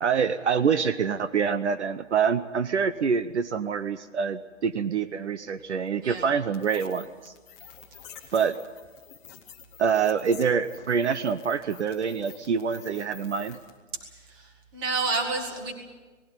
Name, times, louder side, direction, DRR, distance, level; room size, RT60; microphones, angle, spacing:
voice 1, 0.0-7.3 8.3-8.6 9.8-13.6, right 6 dB, 60° right, 11 dB, 1.0 m, -26 dB
sound 1, 6.5-13.8, left 8 dB, 10° left, 0.9 m, -49 dB
voice 2, 14.3-15.7, right 3 dB, 15° right, 4 dB, 1.9 m, -30 dB
19.5 x 15.5 x 9.0 m, 1.3 s
hypercardioid pair, 175°, 38 cm